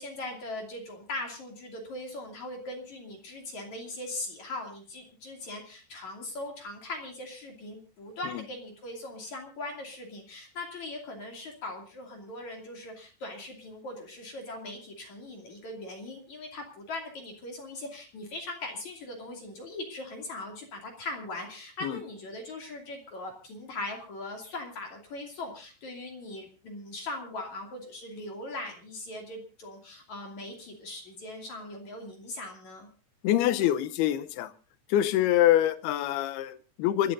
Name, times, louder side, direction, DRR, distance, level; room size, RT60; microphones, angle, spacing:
voice 1, 0.0-32.9, left 2 dB, 45° left, 1 dB, 3.7 m, -40 dB
voice 2, 33.2-34.5 34.9-37.1, left 12 dB, 75° left, 12 dB, 2.7 m, -25 dB
28.0 x 13.0 x 2.6 m, 0.34 s
omnidirectional pair, 4.9 m